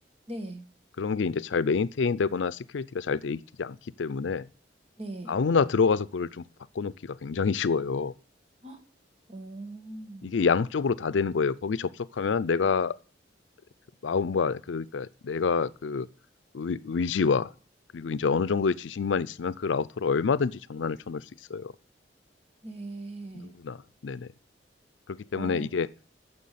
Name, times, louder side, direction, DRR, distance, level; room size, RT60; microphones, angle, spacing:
voice 1, 0.3-0.6 5.0-5.4 8.6-8.8 9.3-10.4 22.6-23.6 25.3-25.7, right 2 dB, 35° right, 1.8 m, -40 dB
voice 2, 1.0-4.5 5.3-6.4 6.8-8.1 10.2-12.9 14.0-16.1 16.5-17.5 17.9-21.2 21.5-21.7 23.3-24.3 25.1-25.9, left 5 dB, 85° left, 0.5 m, -27 dB
9.7 x 7.0 x 8.4 m
head